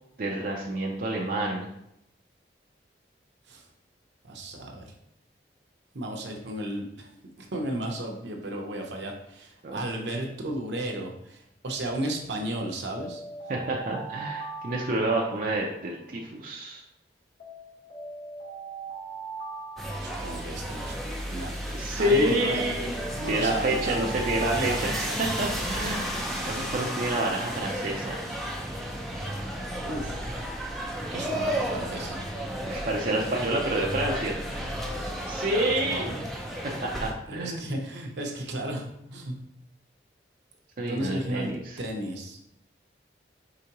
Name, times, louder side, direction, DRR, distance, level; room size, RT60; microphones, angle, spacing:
voice 1, 0.2-1.7 9.6-9.8 13.5-16.8 21.7-22.9 23.3-28.2 32.7-34.4 35.3-36.1 36.8-37.7 40.8-41.8, right 1 dB, 50° right, -2 dB, 0.5 m, -28 dB
voice 2, 4.2-4.9 5.9-7.1 7.4-13.2 20.0-21.0 21.3-21.5 22.0-22.6 23.1-25.1 29.9-30.3 31.1-32.2 35.5-36.2 37.3-39.4 40.8-42.4, right 1 dB, 75° right, 1 dB, 0.8 m, -34 dB
Alarm, 12.9-16.2 17.4-21.2 22.4-25.7, right 4 dB, 85° left, 1.5 m, -41 dB
sound 1, 19.8-37.1, equal, ahead, 0.5 m, -33 dB
4.9 x 3.7 x 2.9 m, 0.78 s
head